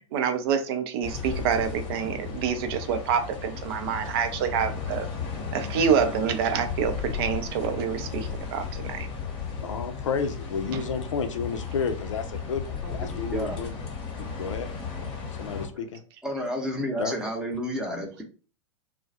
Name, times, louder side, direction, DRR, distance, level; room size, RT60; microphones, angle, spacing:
voice 1, 0.1-5.1 5.5-9.1 10.7-10.8, right 7 dB, 50° right, 0.5 m, -27 dB
sound 1, 1.0-15.7, left 6 dB, 35° left, 0.8 m, -35 dB
voice 2, 9.6-13.7 14.4-14.7 15.4-16.0 17.0-17.1, left 6 dB, 70° left, 0.4 m, -31 dB
voice 3, 12.8-13.6 15.5-15.6 16.2-18.2, equal, 5° right, 0.7 m, -31 dB
2.2 x 2.1 x 2.7 m
figure-of-eight pair, 100°, 16 cm